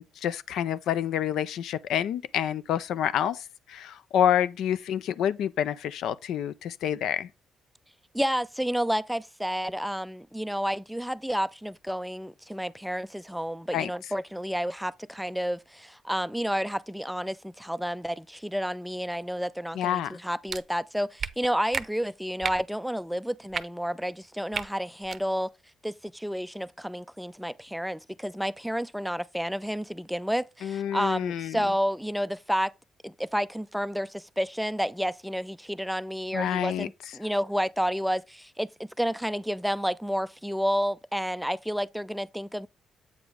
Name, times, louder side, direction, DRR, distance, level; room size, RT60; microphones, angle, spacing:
voice 1, 0.0-7.3 13.7-13.9 19.7-20.2 30.6-31.6 36.3-36.9, left 10 dB, 80° left, 0.5 m, -28 dB
voice 2, 8.1-25.5 25.8-32.7 33.0-42.7, equal, ahead, 0.3 m, -30 dB
sound 1, 20.5-20.6 21.2-21.3 21.7-21.9 22.4-22.6 23.5-23.6 24.5-24.7 25.0-25.2, right 6 dB, 50° right, 0.6 m, -31 dB
8.1 x 5.0 x 3.6 m
cardioid pair, 90°, 0 cm